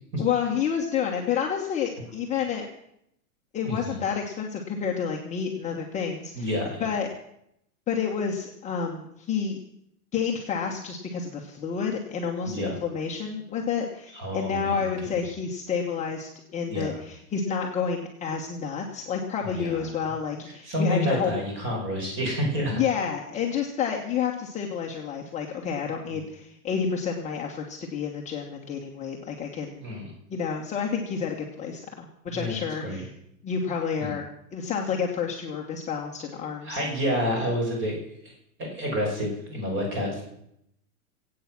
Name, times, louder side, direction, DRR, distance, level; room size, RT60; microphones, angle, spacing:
voice 1, 0.2-2.7 3.5-6.5 6.8-7.1 7.9-9.6 10.1-21.3 22.7-29.8 30.3-33.1 33.4-34.2 34.5-36.9, left 6 dB, 15° left, -1 dB, 1.2 m, -29 dB
voice 2, 3.6-4.0 6.3-6.9 12.4-12.7 14.1-15.1 16.7-17.0 19.4-19.9 20.6-22.8 26.1-26.2 29.8-30.1 32.3-33.0 34.0-34.1 36.6-38.0 38.2-38.3 38.6-40.2, equal, 25° right, 0 dB, 5.3 m, -29 dB
22.5 x 8.7 x 6.0 m, 0.76 s
supercardioid pair, 155°, 45 cm